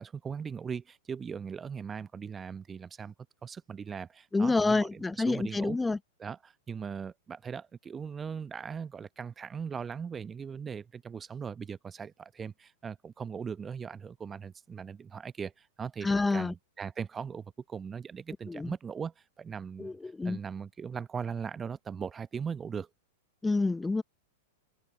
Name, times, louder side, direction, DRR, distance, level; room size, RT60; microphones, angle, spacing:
voice 1, 0.0-3.1 3.4-5.8 6.2-20.0 20.2-22.9, right 6 dB, 20° right, 1.1 m, -39 dB
voice 2, 4.3-6.0 16.0-16.5 18.5-18.7 19.8-20.4 23.4-24.0, left 3 dB, 10° left, 1.1 m, -28 dB
figure-of-eight pair, 95°, 0 cm